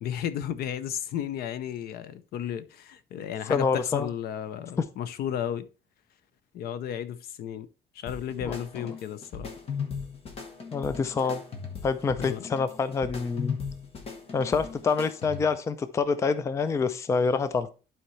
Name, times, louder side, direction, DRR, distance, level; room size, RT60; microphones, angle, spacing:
voice 1, 0.0-5.7 6.5-7.7 7.9-9.5 12.2-12.4, left 9 dB, 70° left, 0.6 m, -33 dB
voice 2, 3.5-4.1 4.8-4.9 8.4-8.6 10.7-11.4 11.8-13.6 14.3-17.7, left 5 dB, 15° left, 0.4 m, -26 dB
sound 1, 8.1-15.7, left 6 dB, 35° left, 1.2 m, -38 dB
11.5 x 4.5 x 3.2 m
cardioid pair, 175°, 17 cm